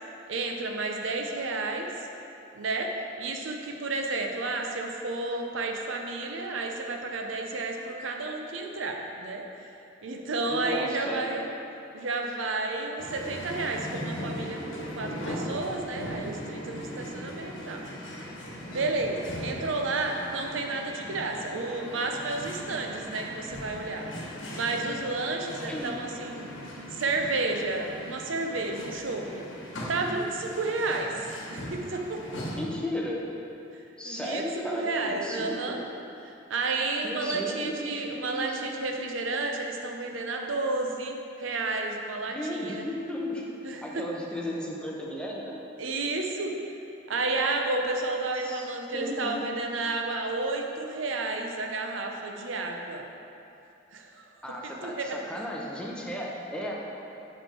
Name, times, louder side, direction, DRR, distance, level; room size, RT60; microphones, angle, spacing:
voice 1, 0.3-1.9 2.5-9.4 10.0-11.4 11.9-17.8 18.7-24.1 24.5-26.5 26.9-29.4 29.9-32.2 34.0-35.8 36.2-42.8 43.6-44.2 45.8-46.5 47.1-53.1 53.9-54.2 54.8-55.2, right 3 dB, 80° right, 2 dB, 0.6 m, -31 dB
voice 2, 10.5-11.3 25.7-26.0 32.5-33.2 34.0-35.8 37.0-38.9 42.3-43.4 43.8-45.6 48.4-49.4 54.4-56.7, left 1 dB, 5° left, -3 dB, 0.7 m, -35 dB
sound 1, 13.0-32.6, equal, 80° left, 1.2 m, -39 dB
6.5 x 5.1 x 4.5 m, 2.8 s
head